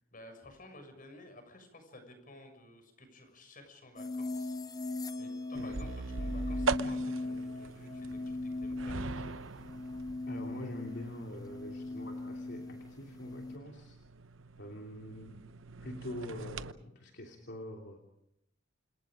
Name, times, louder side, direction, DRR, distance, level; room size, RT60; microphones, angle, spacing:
voice 1, 0.1-4.6 4.8-9.3, left 1 dB, 45° left, 6 dB, 6.8 m, -54 dB
sound 1, 4.0-13.6, left 2 dB, 20° left, 1.0 m, -39 dB
sound 2, 5.5-16.7, right 4 dB, 85° right, 0.9 m, -41 dB
voice 2, 10.3-14.0 14.6-15.4 15.8-18.0, left 1 dB, 60° left, 2 dB, 3.1 m, -44 dB
29.5 x 27.0 x 5.2 m, 0.79 s
head